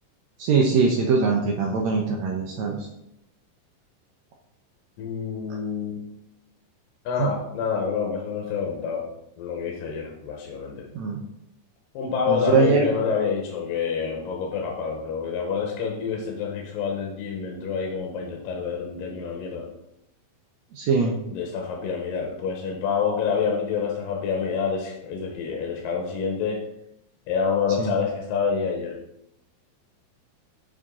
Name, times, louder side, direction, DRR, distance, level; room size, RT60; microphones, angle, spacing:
voice 1, 0.4-2.8 7.2-7.3 10.9-11.2 12.3-12.9 20.8-21.1 27.8-27.9, right 4 dB, 90° right, 0 dB, 1.5 m, -22 dB
voice 2, 5.0-6.0 7.1-9.1 9.4-10.9 11.9-19.7 21.3-26.6 27.3-29.0, left 6 dB, 75° left, 1 dB, 2.5 m, -27 dB
7.1 x 6.2 x 3.7 m, 0.82 s
omnidirectional pair, 4.2 m